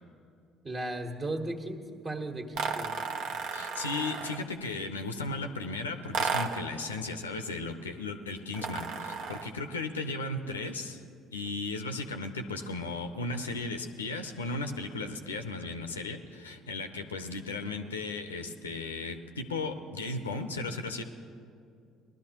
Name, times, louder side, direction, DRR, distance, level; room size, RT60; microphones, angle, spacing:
voice 1, 0.6-2.9, right 2 dB, 35° right, 3 dB, 1.5 m, -36 dB
sound 1, 2.5-4.5 6.1-6.7 8.5-9.6, right 5 dB, 65° right, 0.7 m, -33 dB
voice 2, 3.5-11.0 11.3-21.0, left 3 dB, 90° left, 7 dB, 0.6 m, -36 dB
19.5 x 12.0 x 2.9 m, 2.4 s
hypercardioid pair, 55°, 0 cm